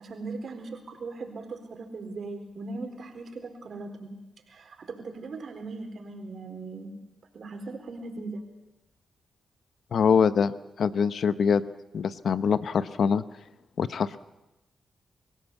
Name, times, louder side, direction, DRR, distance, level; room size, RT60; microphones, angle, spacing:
voice 1, 0.0-4.1 4.5-6.9 7.3-8.4, right 3 dB, 60° right, 5 dB, 4.3 m, -39 dB
voice 2, 9.9-10.5 10.8-11.6 11.9-13.2 13.8-14.2, left 6 dB, 65° left, 14 dB, 0.9 m, -23 dB
25.0 x 16.0 x 8.3 m, 0.98 s
cardioid pair, 60°, 0 cm